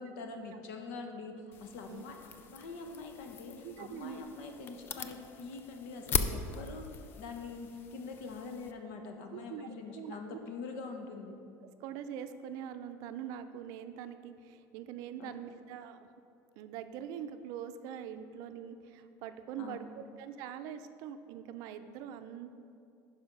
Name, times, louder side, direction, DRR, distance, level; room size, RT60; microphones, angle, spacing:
voice 1, 0.0-11.4 15.2-15.6 19.6-20.1, left 4 dB, 85° left, 4 dB, 1.1 m, -44 dB
sound 1, 1.5-8.7, left 6 dB, 30° left, 0.4 m, -40 dB
voice 2, 3.6-4.2 9.3-9.7 9.9-10.4 10.7-10.9 11.8-16.1 16.6-22.6, right 9 dB, 55° right, 9 dB, 0.5 m, -43 dB
10.0 x 5.6 x 5.2 m, 2.5 s
cardioid pair, 175°, 7 cm